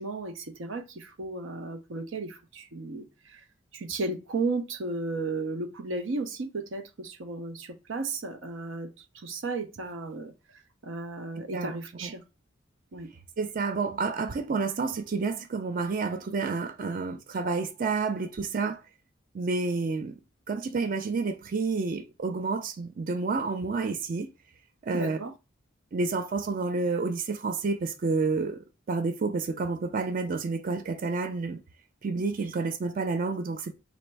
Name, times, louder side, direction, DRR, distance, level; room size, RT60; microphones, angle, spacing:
voice 1, 0.0-3.4 3.7-12.2 12.9-13.1 24.9-25.3, right 3 dB, 90° right, 0.6 m, -34 dB
voice 2, 13.4-18.8 19.3-20.2 20.5-24.3 24.8-25.2 25.9-31.6 32.0-33.7, right 4 dB, 45° right, 0.4 m, -29 dB
4.1 x 2.6 x 3.3 m
head